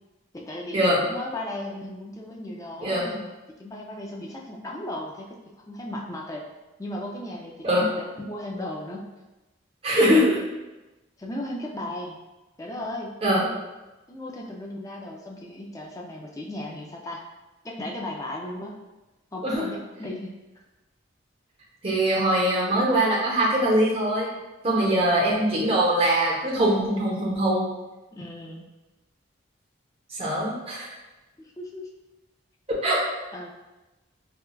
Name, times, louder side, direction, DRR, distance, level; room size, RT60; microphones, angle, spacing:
voice 1, 0.3-3.2 3.6-5.3 5.7-6.4 6.8-7.9 8.2-9.0 10.0-10.2 11.2-12.2 12.6-13.1 13.4-13.5 14.1-17.2 17.6-18.8 19.3-20.3 28.1-28.6 31.4-31.9 33.3-33.5, left 1 dB, 15° left, -1 dB, 0.4 m, -36 dB
voice 2, 9.8-10.4 13.2-13.4 19.4-19.7 21.8-24.3 24.6-27.7 30.1-30.9 32.7-33.1, right 1 dB, 30° right, -5 dB, 0.8 m, -22 dB
4.2 x 2.3 x 2.2 m, 1.1 s
head